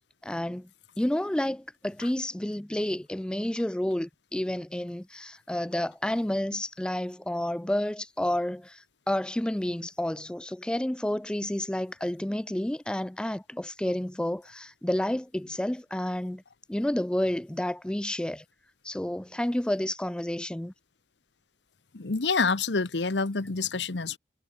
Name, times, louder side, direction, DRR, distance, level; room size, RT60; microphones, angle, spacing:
voice 1, 0.2-0.7 1.0-16.4 16.7-18.4 18.8-20.7, left 1 dB, 5° left, 0.3 m, -30 dB
voice 2, 21.9-24.2, left 4 dB, 90° left, 1.1 m, -27 dB
head